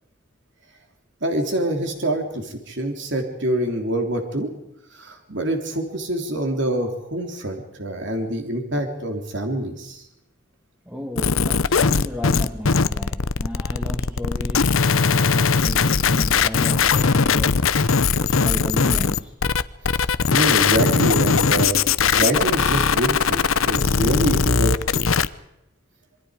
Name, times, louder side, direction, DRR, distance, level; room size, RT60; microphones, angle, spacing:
voice 1, 1.2-4.5 4.9-10.0 20.3-21.8 22.2-25.0, right 1 dB, 60° right, 3 dB, 3.3 m, -25 dB
voice 2, 10.9-17.6 18.2-19.3, equal, 10° right, 2 dB, 2.2 m, -34 dB
sound 1, 11.2-25.3, left 5 dB, 80° left, 0.8 m, -20 dB
26.5 x 23.5 x 5.0 m, 0.86 s
head